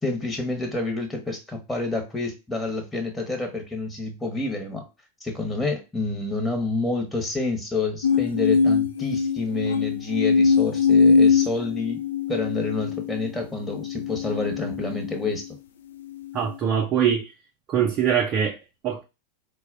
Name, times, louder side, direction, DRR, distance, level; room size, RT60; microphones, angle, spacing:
voice 1, 0.0-4.8 5.2-12.0 12.3-15.4, left 3 dB, 10° left, 1.0 m, -28 dB
sound 1, 8.0-15.5 16.1-16.6, left 5 dB, 60° left, 0.3 m, -22 dB
voice 2, 16.3-17.3 17.7-18.6 18.8-19.0, right 8 dB, 30° right, 0.4 m, -23 dB
4.4 x 2.1 x 2.4 m
figure-of-eight pair, 90°, 0 cm